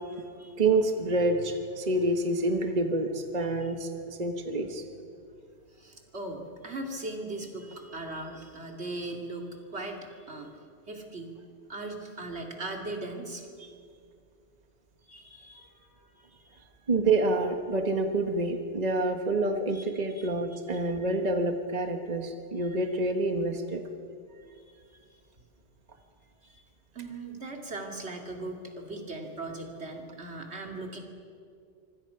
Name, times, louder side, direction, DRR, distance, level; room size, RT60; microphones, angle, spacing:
voice 1, 0.0-0.6 1.4-1.5 5.7-10.5 10.9-11.4 11.7-13.5 15.1-16.4 19.7-20.8 24.5-24.8 26.4-26.6 26.9-31.0, right 2 dB, 75° right, 2 dB, 2.9 m, -39 dB
voice 2, 0.6-4.8 16.9-23.8, right 2 dB, 40° right, 5 dB, 1.4 m, -27 dB
25.5 x 25.0 x 5.7 m, 2.4 s
omnidirectional pair, 1.1 m